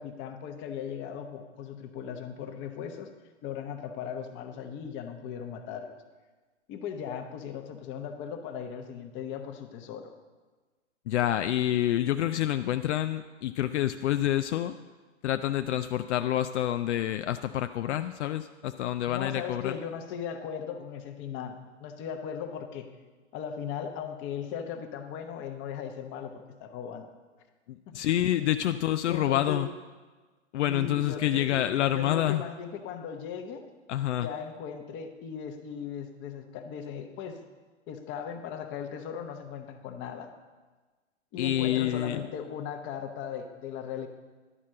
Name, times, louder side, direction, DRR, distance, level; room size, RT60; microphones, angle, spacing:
voice 1, 0.0-3.1 3.4-6.0 6.7-10.1 19.0-22.9 23.3-26.3 26.6-27.1 27.9-28.0 29.1-29.7 30.7-31.6 31.9-33.7 34.2-37.4 37.9-40.3 41.3-44.1, left 7 dB, 30° left, 6 dB, 1.0 m, -38 dB
voice 2, 11.1-14.7 15.2-19.7 27.7-29.7 30.5-32.4 33.9-34.3 41.4-42.2, left 12 dB, 70° left, 9 dB, 0.5 m, -27 dB
11.0 x 4.4 x 7.5 m, 1.3 s
hypercardioid pair, 120°, 36 cm